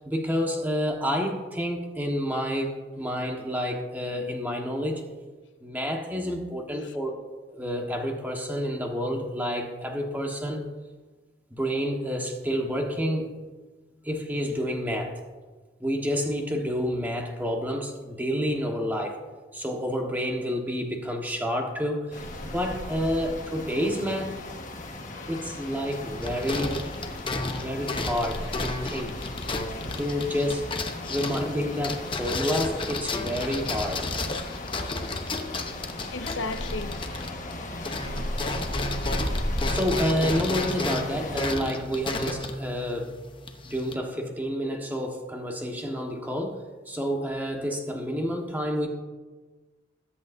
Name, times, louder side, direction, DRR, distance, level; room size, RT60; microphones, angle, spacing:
voice 1, 0.0-5.0 5.6-7.2 7.5-10.7 11.5-13.5 14.0-15.2 15.8-19.2 19.5-24.4 25.3-26.8 27.6-29.2 29.8-30.7 31.1-34.1 39.6-43.2 43.6-48.9, equal, 10° right, 1.4 m, -29 dB
sound 1, 22.1-41.5, left 1 dB, 40° left, 1.4 m, -36 dB
voice 2, 25.1-25.9 27.4-27.7 33.3-33.6 35.8-37.0, left 3 dB, 70° left, 0.5 m, -38 dB
sound 2, 25.9-37.6 37.8-43.9, left 2 dB, 25° left, 0.9 m, -32 dB
21.5 x 8.5 x 2.7 m
head